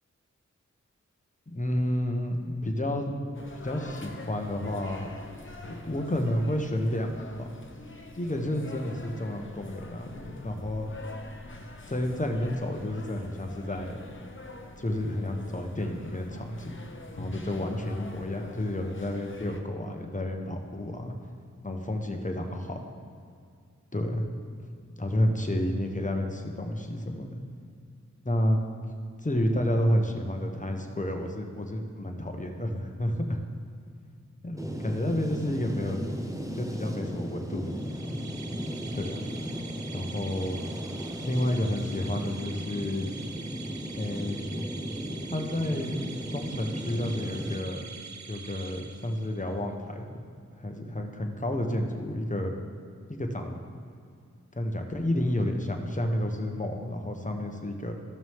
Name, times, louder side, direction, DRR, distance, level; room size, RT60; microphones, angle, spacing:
voice 1, 1.5-3.1 3.6-5.1 5.8-7.5 8.2-10.9 11.9-14.0 14.8-16.8 17.2-21.1 21.6-22.8 23.9-24.2 25.0-27.4 28.2-28.6 29.2-33.4 34.4-36.0 36.5-38.0 38.9-39.3 39.9-40.6 41.2-43.1 44.0-44.4 45.3-45.9 46.3-47.8 48.3-50.2 50.6-52.5 53.1-53.6 54.5-57.9, left 1 dB, 25° left, 3 dB, 1.2 m, -30 dB
sound 1, 3.3-19.6, left 2 dB, 40° left, 0.9 m, -44 dB
sound 2, 34.6-47.6, equal, 10° right, 1.0 m, -36 dB
sound 3, 37.7-49.5, right 5 dB, 65° right, 0.6 m, -45 dB
14.5 x 6.1 x 3.6 m, 2.3 s
cardioid pair, 45°, 30 cm